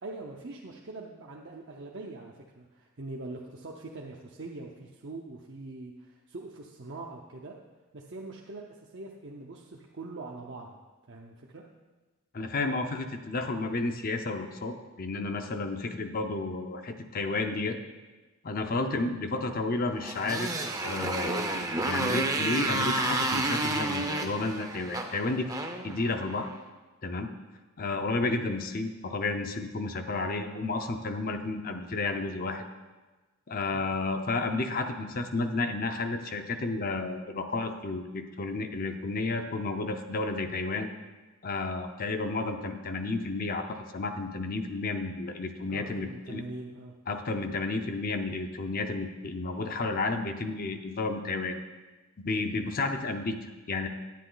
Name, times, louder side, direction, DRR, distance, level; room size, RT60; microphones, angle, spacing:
voice 1, 0.0-7.6 7.9-8.7 8.9-10.8 11.1-11.6 18.8-19.0 33.7-33.9 45.7-46.9 52.3-52.6, right 2 dB, 55° right, -1 dB, 0.7 m, -43 dB
voice 2, 12.3-17.8 18.4-20.5 20.8-25.5 25.8-26.5 27.0-27.3 27.8-32.6 33.5-40.9 41.4-46.4 47.1-51.6 52.2-53.9, left 3 dB, 40° left, 6 dB, 0.6 m, -32 dB
Motorcycle, 20.0-26.5, right 2 dB, 15° right, 0.6 m, -31 dB
10.0 x 9.2 x 3.9 m, 1.2 s
head